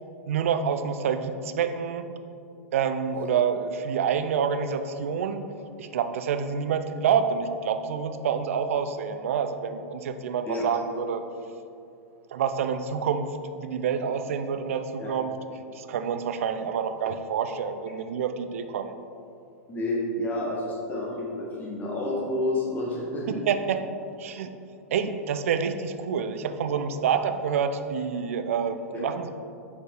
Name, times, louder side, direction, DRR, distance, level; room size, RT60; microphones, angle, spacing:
voice 1, 0.3-2.1 2.7-5.5 5.8-11.2 12.3-15.3 15.7-19.0 23.3-23.8 24.2-24.5 24.9-29.3, right 7 dB, 60° right, 9 dB, 0.4 m, -27 dB
voice 2, 19.7-23.4, left 1 dB, 20° left, -4 dB, 1.3 m, -29 dB
5.2 x 4.6 x 4.3 m, 2.6 s
figure-of-eight pair, 100°, 8 cm